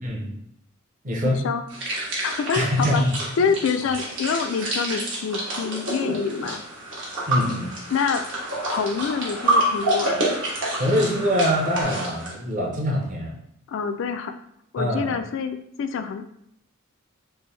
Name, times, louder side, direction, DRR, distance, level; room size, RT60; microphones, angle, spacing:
voice 1, 0.0-0.4 1.0-1.4 2.5-3.1 3.4-3.5 7.3-7.7 10.8-13.3 14.8-15.2, equal, 40° right, -2 dB, 0.8 m, -24 dB
voice 2, 1.2-1.6 2.2-3.0 3.4-6.6 7.9-8.2 8.6-10.2 13.7-14.3 14.7-16.2, left 6 dB, 65° left, 9 dB, 0.3 m, -26 dB
sound 1, 1.7-12.3, right 1 dB, 65° right, 1.1 m, -28 dB
sound 2, 5.3-11.8, equal, 85° right, 1.0 m, -40 dB
3.3 x 2.6 x 3.2 m, 0.73 s
head